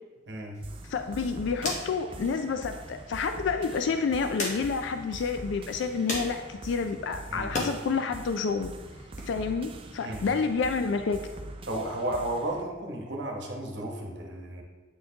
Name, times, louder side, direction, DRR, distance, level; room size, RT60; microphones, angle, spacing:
voice 1, 0.3-0.6 7.3-7.5 10.0-10.2 11.7-14.6, right 1 dB, 65° right, 1 dB, 1.0 m, -33 dB
sound 1, 0.5-7.7 8.1-9.2, left 1 dB, 40° left, 1.0 m, -40 dB
sound 2, 0.6-12.6, right 2 dB, 30° right, 0.4 m, -43 dB
voice 2, 0.9-8.7 9.3-11.3, left 5 dB, 70° left, 8 dB, 0.3 m, -29 dB
8.5 x 4.2 x 2.8 m, 1.3 s
head